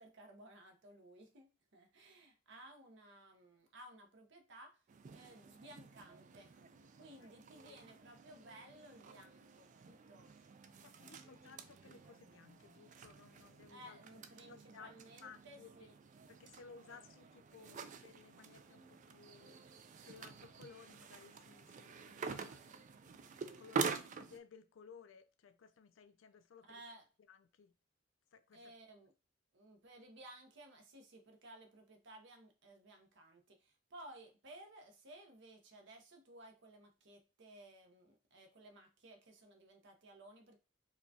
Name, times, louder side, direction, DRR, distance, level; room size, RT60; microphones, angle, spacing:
voice 1, 0.0-4.8 5.1-6.5 6.9-10.3 13.7-15.9 26.7-27.0 28.5-29.1 29.5-40.6, right 1 dB, 60° right, 0.8 m, -57 dB
sound 1, 4.9-24.4, right 5 dB, 40° right, 0.3 m, -47 dB
voice 2, 10.8-14.0 14.5-15.9 16.3-23.0 23.4-26.8 27.3-27.7 28.3-28.7, left 5 dB, 75° left, 0.4 m, -59 dB
4.8 x 2.2 x 2.7 m
head